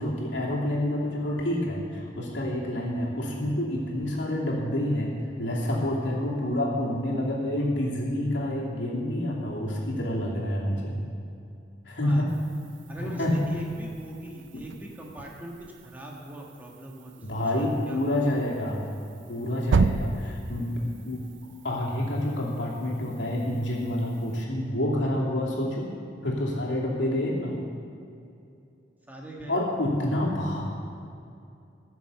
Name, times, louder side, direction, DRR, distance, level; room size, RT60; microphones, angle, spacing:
voice 1, 0.0-5.1 5.4-11.0 11.9-12.2 13.0-13.3 14.5-14.6 17.2-18.8 19.3-20.7 21.0-21.3 21.6-25.9 26.2-27.6 29.5-30.6, left 1 dB, 85° left, -3 dB, 2.6 m, -28 dB
sound 1, 12.3-24.4, right 4 dB, 85° right, 0.4 m, -35 dB
voice 2, 12.9-18.3 29.1-29.6, right 1 dB, 10° right, -1 dB, 1.5 m, -42 dB
15.0 x 6.8 x 6.9 m, 2.6 s
head